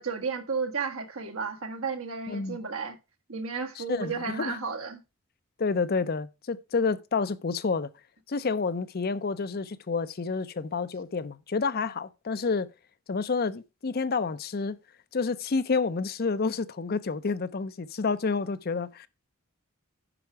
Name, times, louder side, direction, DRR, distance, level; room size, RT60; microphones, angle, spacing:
voice 1, 0.0-3.0 3.3-5.0, right 5 dB, 80° right, 1.5 m, -33 dB
voice 2, 2.3-2.6 3.8-4.6 5.6-7.9 8.3-12.7 13.1-14.8 15.1-19.1, left 4 dB, 45° left, 0.5 m, -29 dB
9.9 x 5.8 x 4.6 m
head